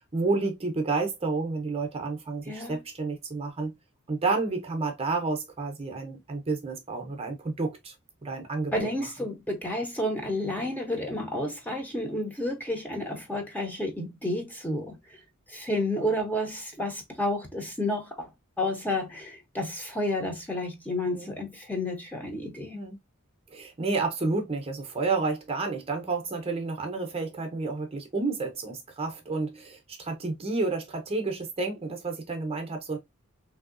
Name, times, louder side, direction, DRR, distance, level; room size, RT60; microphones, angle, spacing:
voice 1, 0.1-3.7 4.1-7.9 8.2-8.9 21.1-21.3 22.7-23.0 23.5-33.0, right 3 dB, 25° right, 0.7 m, -30 dB
voice 2, 2.5-2.8 8.7-15.0 15.5-18.3 18.6-22.8, left 1 dB, 10° left, 0.7 m, -31 dB
3.3 x 2.7 x 2.5 m
head